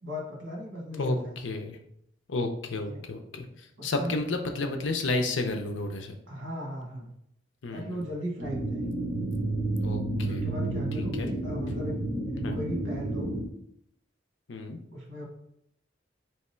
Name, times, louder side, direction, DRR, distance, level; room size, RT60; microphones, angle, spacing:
voice 1, 0.0-1.4 2.9-3.0 3.8-4.1 6.3-7.2 7.7-8.9 10.2-12.0 12.5-13.3 14.9-15.3, equal, 75° right, -1 dB, 1.3 m, -37 dB
voice 2, 1.4-1.8 2.3-3.5 3.8-6.2 7.6-8.0 9.8-10.4 11.0-11.3 12.4-12.6 14.5-14.8, left 2 dB, 75° left, 5 dB, 0.6 m, -31 dB
sound 1, 8.4-13.4, right 2 dB, 15° right, 1.0 m, -30 dB
3.4 x 2.9 x 4.3 m, 0.74 s
head